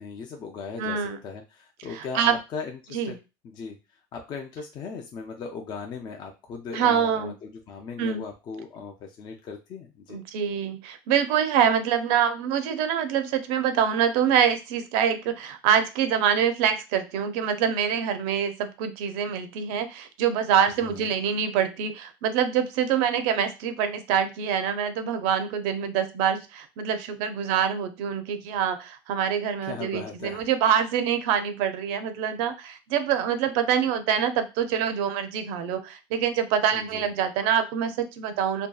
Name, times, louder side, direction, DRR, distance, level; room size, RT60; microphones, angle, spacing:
voice 1, 0.0-3.2 3.4-3.8 4.1-10.2 20.7-21.1 29.6-30.5 36.7-37.1, left 5 dB, 35° left, 2 dB, 0.4 m, -38 dB
voice 2, 0.8-1.2 1.9-2.4 2.9-3.2 6.7-7.3 8.0-8.2 10.1-38.7, right 8 dB, 70° right, 9 dB, 0.5 m, -25 dB
2.6 x 2.2 x 2.3 m, 0.28 s
supercardioid pair, 130°, 12 cm